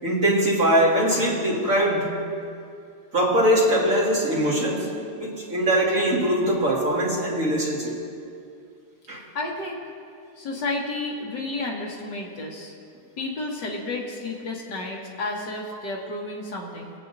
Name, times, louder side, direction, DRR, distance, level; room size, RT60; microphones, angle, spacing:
voice 1, 0.0-2.2 3.1-8.0 9.1-9.2, right 1 dB, 45° right, -5 dB, 2.3 m, -22 dB
voice 2, 9.1-9.8 10.4-12.7 13.2-16.9, left 2 dB, 65° left, -2 dB, 1.9 m, -31 dB
24.0 x 8.3 x 2.7 m, 2.4 s
omnidirectional pair, 2.1 m